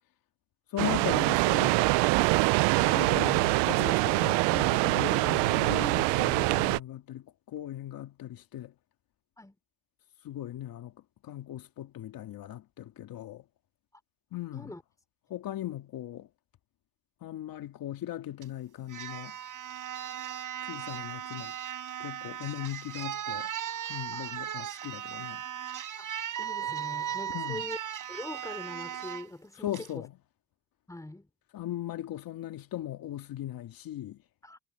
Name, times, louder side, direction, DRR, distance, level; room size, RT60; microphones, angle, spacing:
voice 1, 0.7-1.8 2.8-8.7 10.2-10.9 11.2-13.4 14.3-14.7 15.3-16.3 17.2-19.4 20.6-21.5 22.0-23.5 23.9-25.4 27.3-27.6 29.6-30.1 31.5-34.2, left 13 dB, 55° left, 2.2 m, -38 dB
sound 1, 0.8-6.8, right 24 dB, 80° right, 0.6 m, -24 dB
sound 2, 18.4-18.5 18.9-29.3 29.7-29.9, right 10 dB, 50° right, 5.4 m, -37 dB
voice 2, 26.0-27.8 28.1-30.0 30.9-31.3 34.4-34.6, left 1 dB, 10° left, 3.6 m, -43 dB
cardioid pair, 100°, 41 cm